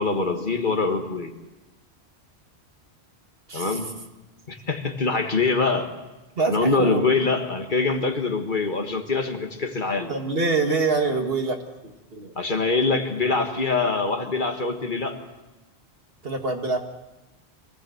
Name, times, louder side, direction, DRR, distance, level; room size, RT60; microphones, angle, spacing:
voice 1, 0.0-1.3 3.5-3.9 4.5-5.9 6.5-10.1 12.4-15.2, left 3 dB, 50° left, 5 dB, 1.8 m, -24 dB
voice 2, 3.5-3.8 6.4-7.2 10.1-11.6 11.8-12.3 16.2-16.8, right 3 dB, 60° right, 4 dB, 2.1 m, -25 dB
24.5 x 17.0 x 7.9 m, 1.1 s
omnidirectional pair, 1.1 m